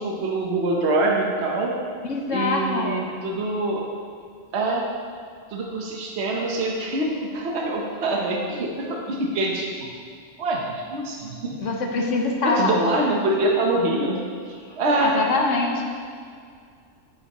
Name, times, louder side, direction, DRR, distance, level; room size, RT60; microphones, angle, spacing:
voice 1, 0.0-1.7 2.3-3.9 4.5-4.8 5.5-9.9 10.4-11.6 12.4-14.2 14.8-15.2, right 2 dB, 55° right, -1 dB, 1.2 m, -24 dB
voice 2, 2.1-3.0 4.6-4.7 11.6-12.9 14.9-15.8, left 3 dB, 70° left, 1 dB, 1.3 m, -24 dB
9.8 x 7.3 x 3.0 m, 2.2 s
omnidirectional pair, 1.3 m